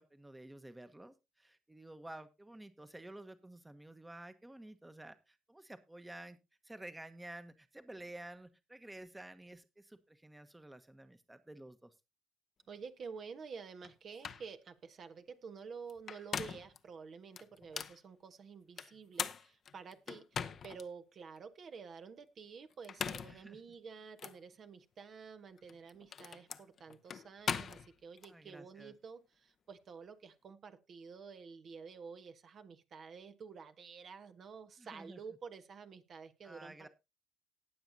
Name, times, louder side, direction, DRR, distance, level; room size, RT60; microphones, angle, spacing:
voice 1, 0.0-6.4 6.6-11.9 23.2-23.6 28.3-28.9 34.8-35.2 36.4-36.9, right 1 dB, 15° right, 10 dB, 1.2 m, -51 dB
voice 2, 12.7-36.9, right 5 dB, 50° right, 8 dB, 1.2 m, -50 dB
sound 1, 13.8-13.9 14.2-14.5 15.9-16.8 17.4-18.0 18.8-20.8 21.4-21.5 22.7-23.4 24.2-24.4 25.6-28.3, left 7 dB, 50° left, 0.8 m, -40 dB
19.0 x 7.1 x 2.7 m, 0.25 s
hypercardioid pair, 55°, 0 cm